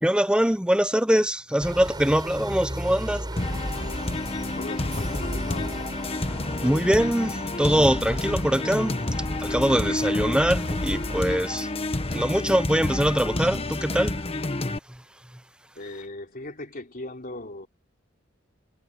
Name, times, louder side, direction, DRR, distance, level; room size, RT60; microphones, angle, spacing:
voice 1, 0.0-3.4 6.6-9.1 9.4-11.7 12.1-14.2 14.9-15.0, equal, 5° right, 0.8 m, -23 dB
sound 1, 1.6-11.2, right 1 dB, 20° right, 5.3 m, -37 dB
sound 2, 3.4-14.8, left 2 dB, 30° left, 1.2 m, -29 dB
voice 2, 4.6-5.8 15.7-17.7, left 2 dB, 45° left, 3.4 m, -38 dB
head